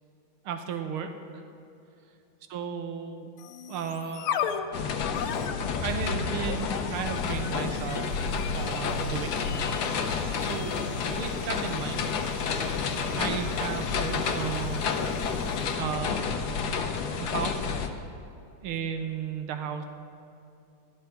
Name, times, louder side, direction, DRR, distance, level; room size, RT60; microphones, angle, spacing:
voice 1, 0.5-1.4 2.5-3.3 3.7-4.3 5.8-8.1 8.5-9.5 10.4-10.8 11.1-12.2 13.1-14.9 15.8-16.5 17.2-17.6 18.6-19.8, right 7 dB, 85° right, 6 dB, 1.7 m, -34 dB
sound 1, 3.4-15.9, left 7 dB, 85° left, 1.5 m, -38 dB
sound 2, 4.7-17.9, left 5 dB, 65° left, 1.2 m, -30 dB
13.0 x 11.0 x 4.5 m, 2.7 s
omnidirectional pair, 2.3 m